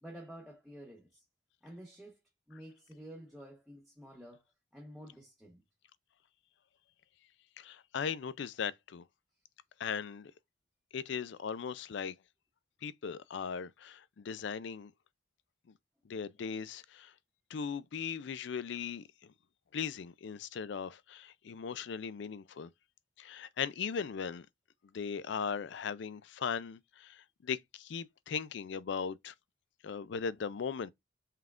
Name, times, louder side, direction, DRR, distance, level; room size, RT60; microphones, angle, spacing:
voice 1, 0.0-1.2 1.6-2.2 2.5-4.4 4.7-5.6, equal, ahead, 1.0 m, -50 dB
voice 2, 7.6-9.0 9.8-10.3 10.9-12.1 12.8-14.9 16.1-17.1 17.5-19.0 19.7-22.7 23.2-24.5 24.9-29.3 29.8-30.9, left 6 dB, 60° left, 0.4 m, -38 dB
5.6 x 3.5 x 2.4 m
head